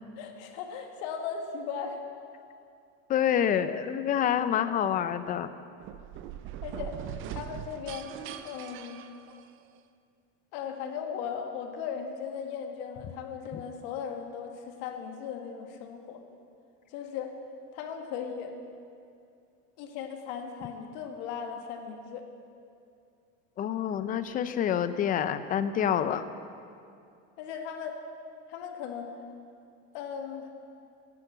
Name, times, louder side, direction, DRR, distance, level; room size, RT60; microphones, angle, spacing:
voice 1, 0.2-2.0 6.6-7.0 7.3-8.1 8.4-9.1 10.5-16.2 16.9-17.3 17.7-18.6 19.8-22.3 27.4-28.0 28.5-29.1 29.9-30.5, left 7 dB, 65° left, 4 dB, 1.9 m, -37 dB
voice 2, 3.1-5.5 13.5-13.6 23.6-26.3, left 9 dB, 25° left, 12 dB, 0.5 m, -27 dB
sound 1, 5.8-9.8, right 10 dB, 35° right, 0.6 m, -41 dB
14.0 x 11.0 x 7.9 m, 2.5 s
cardioid pair, 155°, 34 cm